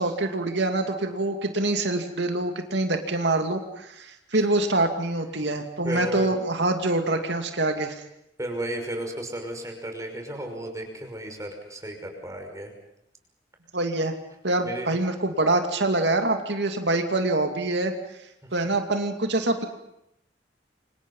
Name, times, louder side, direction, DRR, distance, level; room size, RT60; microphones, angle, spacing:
voice 1, 0.0-8.0 13.7-14.1 14.4-17.9 18.5-19.7, right 2 dB, 70° right, 5 dB, 2.6 m, -25 dB
voice 2, 5.8-6.3 8.4-12.7 14.6-14.9, right 1 dB, 20° right, 4 dB, 5.8 m, -34 dB
30.0 x 26.0 x 5.6 m, 0.79 s
head